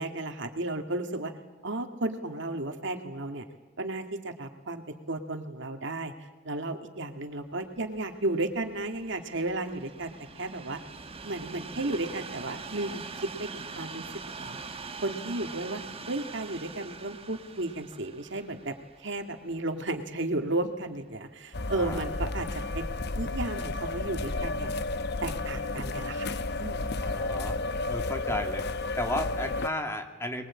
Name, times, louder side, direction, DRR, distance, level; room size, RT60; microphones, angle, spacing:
voice 1, 0.0-1.3 1.6-3.5 3.8-6.1 6.4-10.8 11.2-14.1 14.4-14.6 15.0-15.8 16.1-22.5 22.7-22.9 23.2-24.7 25.2-26.8, right 2 dB, 65° right, 5 dB, 2.3 m, -33 dB
Train, 7.6-20.8 21.5-21.7, right 4 dB, 30° right, 1.3 m, -43 dB
sound 1, 21.5-29.7, left 2 dB, 60° left, 0.9 m, -32 dB
voice 2, 21.7-22.0 27.0-27.6 27.9-28.7 29.0-30.5, left 1 dB, 15° left, 5 dB, 2.3 m, -33 dB
24.0 x 22.0 x 8.8 m, 1.2 s
head